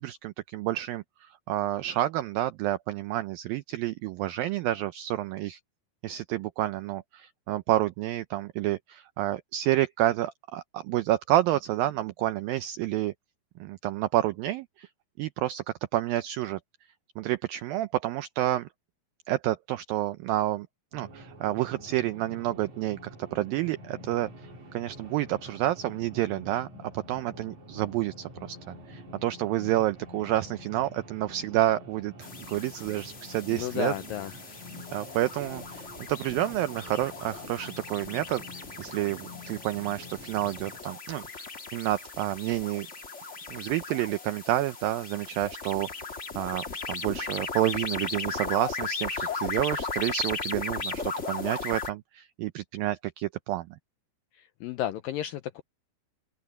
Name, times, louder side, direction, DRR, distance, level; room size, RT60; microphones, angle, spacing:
voice 1, 0.0-5.6 6.0-13.1 13.6-14.9 15.2-15.6 15.9-16.6 17.2-18.7 19.3-20.7 20.9-23.0 23.3-26.7 26.9-33.9 34.9-42.9 43.5-45.9 46.4-53.7, right 14 dB, 85° right, 2.0 m, -29 dB
sound 1, 20.9-40.8, left 1 dB, 45° right, 6.2 m, -47 dB
sound 2, 32.2-51.9, left 4 dB, 55° left, 0.7 m, -37 dB
voice 2, 33.5-34.6 54.6-55.6, left 12 dB, 80° left, 2.0 m, -33 dB
open air
omnidirectional pair, 4.9 m